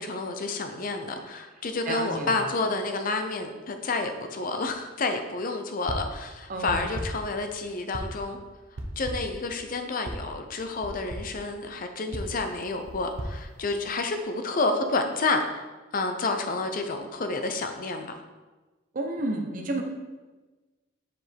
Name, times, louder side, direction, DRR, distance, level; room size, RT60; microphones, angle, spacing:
voice 1, 0.0-8.4 9.0-15.7 15.9-18.1, left 3 dB, 45° left, 6 dB, 0.5 m, -29 dB
voice 2, 1.9-2.4 6.5-6.9 18.9-19.8, right 2 dB, 45° right, 3 dB, 0.7 m, -31 dB
sound 1, 5.9-6.2 6.7-7.3 7.9-8.3 8.8-9.4 10.0-10.3 10.8-11.4 12.1-14.2, right 1 dB, 80° right, 0.8 m, -37 dB
5.9 x 5.0 x 3.4 m, 1.2 s
head